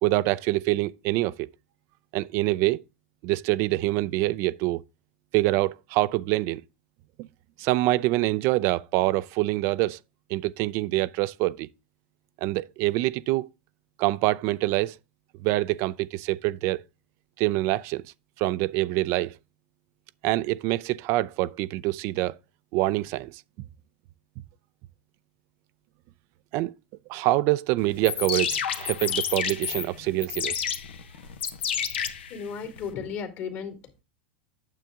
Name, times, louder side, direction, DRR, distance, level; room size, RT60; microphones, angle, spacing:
voice 1, 0.0-1.5 2.1-2.8 3.2-4.8 5.3-6.6 7.6-10.0 10.3-11.7 12.4-13.5 14.0-14.9 15.4-16.8 17.4-18.0 18.4-19.3 20.2-22.3 22.7-23.3 26.5-26.7 27.1-30.7, right 18 dB, 50° right, 0.4 m, -25 dB
sound 1, 27.9-32.9, left 8 dB, 85° left, 1.1 m, -30 dB
voice 2, 31.9-33.8, left 6 dB, 50° left, 2.4 m, -35 dB
9.1 x 6.8 x 3.6 m
hypercardioid pair, 110°, 6 cm